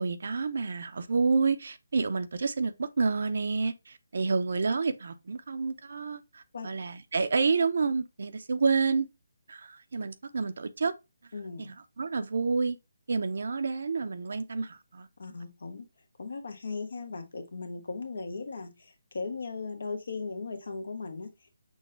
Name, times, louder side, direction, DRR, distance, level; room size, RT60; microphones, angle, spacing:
voice 1, 0.0-9.1 9.5-10.9 11.6-12.8 13.1-15.1, right 4 dB, 65° right, 0.6 m, -29 dB
voice 2, 11.3-11.7 15.2-15.9 16.2-21.5, left 4 dB, 70° left, 1.1 m, -38 dB
6.2 x 2.2 x 3.8 m
hypercardioid pair, 160°, 0 cm